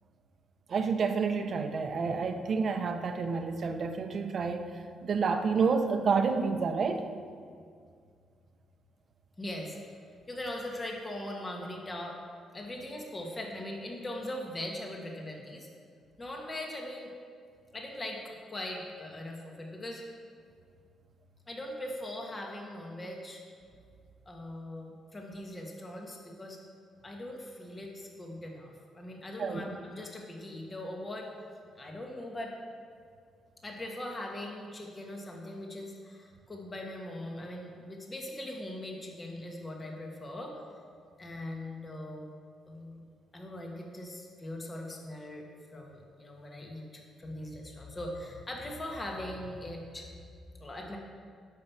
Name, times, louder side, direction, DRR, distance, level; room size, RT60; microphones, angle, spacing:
voice 1, 0.7-7.1 29.4-29.6, right 5 dB, 50° right, 7 dB, 0.8 m, -29 dB
voice 2, 9.4-9.8 10.3-12.2 12.5-15.7 16.2-17.1 17.7-20.0 21.5-23.4 24.2-26.6 27.0-31.3 31.8-32.5 33.6-40.6 41.2-42.3 42.7-43.0 43.3-45.4 45.7-50.1 50.6-51.0, left 1 dB, 25° left, 0 dB, 1.8 m, -40 dB
10.5 x 5.7 x 7.3 m, 2.2 s
cardioid pair, 90°, 0 cm